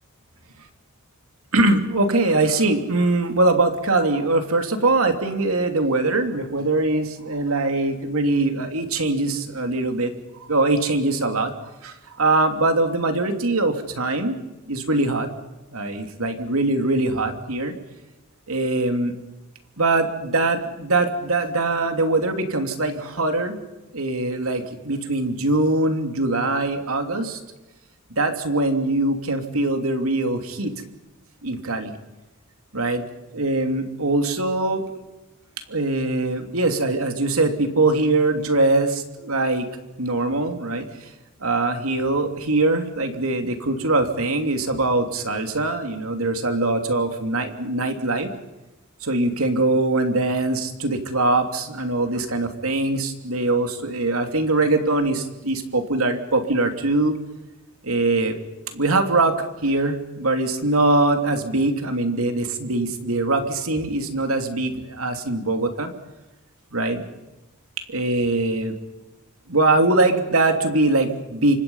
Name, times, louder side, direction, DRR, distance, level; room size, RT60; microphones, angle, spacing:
voice 1, 1.5-10.1 10.5-11.5 11.8-14.4 14.7-15.3 15.7-17.7 18.5-19.1 19.8-23.6 23.9-27.4 28.2-30.7 31.4-31.9 32.7-33.0 33.3-34.8 35.7-39.7 40.0-40.9 41.4-48.3 49.0-57.1 57.8-58.4 58.7-65.9 66.7-67.0 67.9-68.7 69.5-71.6, right 2 dB, 75° right, 6 dB, 3.1 m, -22 dB
29.0 x 25.5 x 5.7 m, 1.0 s
head